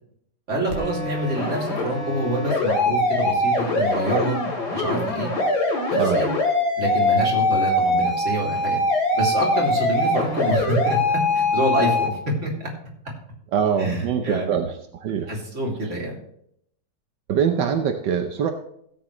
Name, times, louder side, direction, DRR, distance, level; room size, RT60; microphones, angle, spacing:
voice 1, 0.5-4.4 4.7-5.3 5.9-6.3 6.8-8.8 9.1-12.7 13.8-14.5 15.3-16.2, right 1 dB, 45° right, -3 dB, 3.5 m, -26 dB
sound 1, 0.7-12.1, left 2 dB, 65° left, 3.0 m, -22 dB
voice 2, 5.9-6.3 13.5-15.3 17.3-18.5, right 7 dB, 85° right, 5 dB, 1.6 m, -23 dB
16.5 x 8.0 x 3.2 m, 0.71 s
omnidirectional pair, 1.9 m